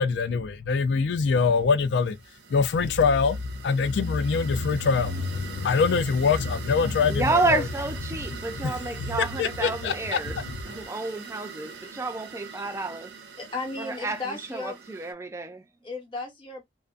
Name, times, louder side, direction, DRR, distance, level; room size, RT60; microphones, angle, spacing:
voice 1, 0.0-2.2 2.5-7.6 8.6-8.7 9.2-10.8, left 5 dB, 85° left, 0.4 m, -24 dB
sound 1, 1.8-15.1, right 6 dB, 75° right, 0.6 m, -43 dB
voice 2, 7.1-10.4 10.7-13.1 13.8-15.6, right 3 dB, 15° right, 0.3 m, -30 dB
voice 3, 13.4-14.8 15.8-16.7, left 3 dB, 30° left, 1.0 m, -35 dB
2.5 x 2.1 x 2.4 m
head